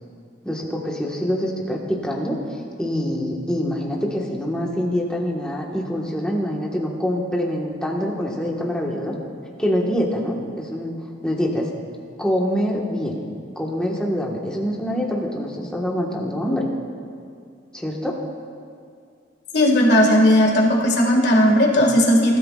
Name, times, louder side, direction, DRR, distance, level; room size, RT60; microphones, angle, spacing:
voice 1, 0.4-9.1 9.6-10.9 11.2-11.7 12.2-13.2 13.5-16.7 17.7-18.1, equal, 5° left, -2 dB, 1.5 m, -25 dB
voice 2, 19.5-22.4, equal, 60° left, -1 dB, 2.0 m, -16 dB
20.0 x 13.0 x 2.5 m, 2.3 s
head